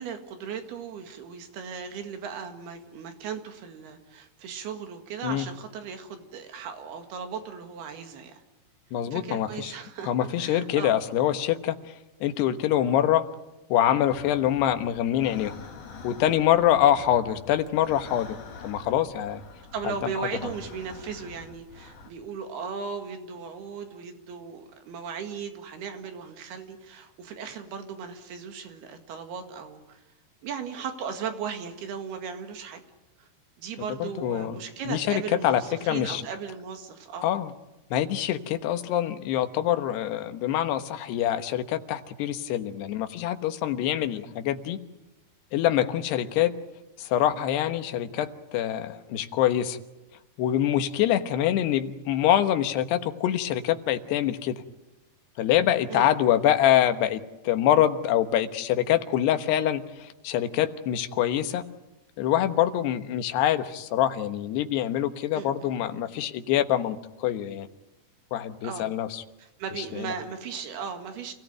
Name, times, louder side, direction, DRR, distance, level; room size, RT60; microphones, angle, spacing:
voice 1, 0.0-8.4 9.1-11.0 19.7-30.0 30.4-32.8 33.2-33.3 33.6-37.3 55.9-56.2 65.3-65.7 68.6-68.9 69.4-71.3, right 6 dB, 75° right, 6 dB, 3.9 m, -37 dB
voice 2, 8.9-9.7 10.1-11.8 12.2-13.3 13.7-15.5 16.0-18.4 18.6-19.4 19.8-20.1 20.4-20.5 34.0-34.6 34.9-35.6 35.9-36.2 37.2-37.5 37.9-44.8 45.5-46.5 47.0-49.8 50.4-54.6 55.4-57.2 57.4-61.6 62.2-67.7 68.3-69.2 69.8-70.1, left 11 dB, 85° left, 9 dB, 3.3 m, -25 dB
sound 1, 14.0-22.1, left 4 dB, 45° left, 2.8 m, -46 dB
28.5 x 17.0 x 9.0 m, 1.0 s
omnidirectional pair, 4.7 m